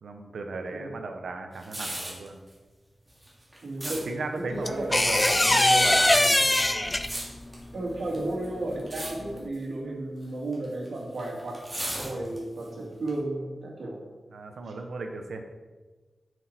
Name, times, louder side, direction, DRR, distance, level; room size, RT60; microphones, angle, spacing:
voice 1, 0.0-2.4 3.8-6.5 14.3-15.4, right 3 dB, 85° right, 5 dB, 1.0 m, -35 dB
sound 1, 1.6-2.3 3.1-4.0 5.0-5.7 6.5-7.6 8.1-8.5 8.8-9.1 9.4-9.6 10.5-12.6 13.1-13.2, right 1 dB, 15° right, 2.7 m, -35 dB
voice 2, 3.6-4.0 4.5-4.9 7.7-11.6 11.9-14.0, right 2 dB, 70° right, -2 dB, 2.3 m, -33 dB
sound 2, 4.7-7.4 9.1-9.3, left 1 dB, 15° left, 0.5 m, -21 dB
9.2 x 6.5 x 4.5 m, 1.3 s
wide cardioid pair, 105°, 0 cm